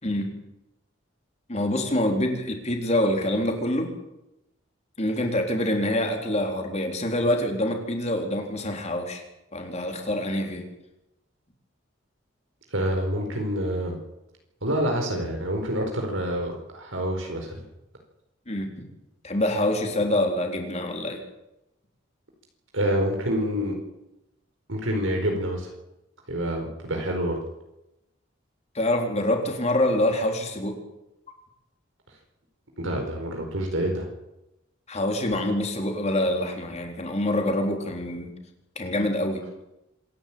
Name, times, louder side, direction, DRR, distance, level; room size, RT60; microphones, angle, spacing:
voice 1, 0.0-0.3 1.5-4.0 5.0-9.2 9.5-10.6 18.5-18.9 19.2-21.2 28.7-30.8 34.9-38.3 38.8-39.4, left 1 dB, 35° left, 3 dB, 4.1 m, -26 dB
voice 2, 12.7-14.0 14.6-17.6 22.7-23.7 24.7-25.7 26.3-27.4 32.8-34.1, equal, 80° right, 2 dB, 4.5 m, -27 dB
26.5 x 12.0 x 8.9 m, 0.90 s
head